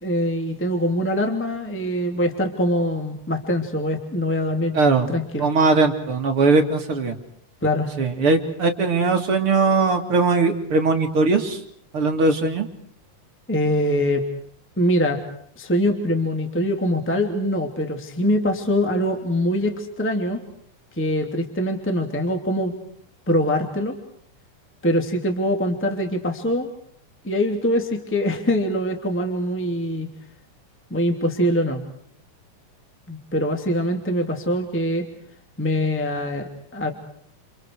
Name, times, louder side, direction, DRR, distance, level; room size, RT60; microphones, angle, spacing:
voice 1, 0.0-4.7 5.1-5.5 7.6-7.9 13.5-14.3 14.8-15.2 15.6-20.4 21.0-22.7 23.3-24.0 24.8-26.7 27.2-30.1 30.9-31.8 33.1-35.0 35.6-36.9, equal, 5° left, 5 dB, 2.4 m, -23 dB
voice 2, 4.7-5.1 5.4-7.2 8.0-11.6 11.9-12.7, right 3 dB, 45° right, 4 dB, 2.9 m, -20 dB
29.5 x 28.5 x 4.8 m, 0.64 s
omnidirectional pair, 3.9 m